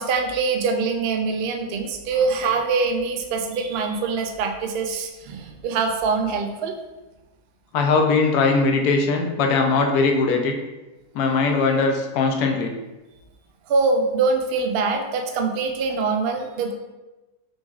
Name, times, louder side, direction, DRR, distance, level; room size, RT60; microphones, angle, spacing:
voice 1, 0.0-6.7 13.7-16.7, right 4 dB, 80° right, 4 dB, 0.5 m, -24 dB
voice 2, 2.1-2.6 7.7-10.5 11.1-12.7, left 4 dB, 80° left, 2 dB, 1.1 m, -20 dB
5.1 x 3.2 x 2.4 m, 1.1 s
omnidirectional pair, 1.6 m